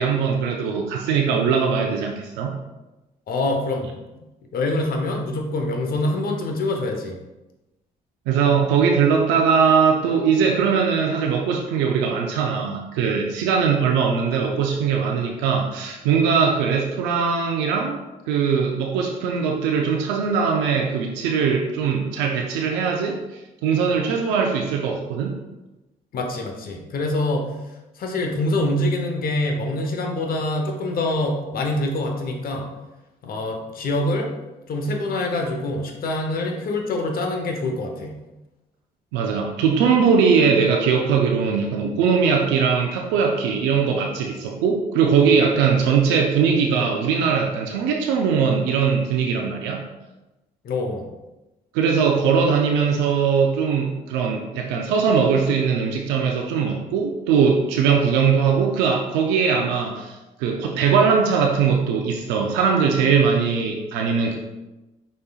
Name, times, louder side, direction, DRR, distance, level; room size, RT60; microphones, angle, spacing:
voice 1, 0.0-2.5 8.3-18.0 18.3-25.3 39.1-49.8 51.7-64.4, right 6 dB, 85° right, 1 dB, 0.5 m, -20 dB
voice 2, 3.3-3.9 4.5-7.2 26.1-27.5 28.0-32.7 33.2-34.3 34.7-38.2 50.6-51.1, left 2 dB, 60° left, 2 dB, 0.9 m, -25 dB
4.9 x 4.2 x 2.4 m, 1.0 s
supercardioid pair, 65°, 17 cm